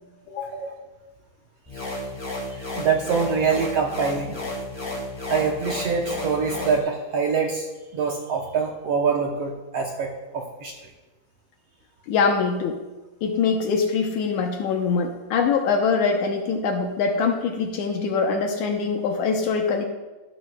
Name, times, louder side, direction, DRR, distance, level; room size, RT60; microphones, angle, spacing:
voice 1, 0.3-0.6 12.1-12.8 13.2-19.8, left 5 dB, 75° left, 4 dB, 1.9 m, -23 dB
sound 1, 1.7-6.8, left 1 dB, 10° left, 1.2 m, -32 dB
voice 2, 2.5-4.4 5.3-7.7 7.9-10.9, right 5 dB, 75° right, 0 dB, 1.4 m, -25 dB
12.5 x 11.5 x 2.2 m, 1.2 s
omnidirectional pair, 3.8 m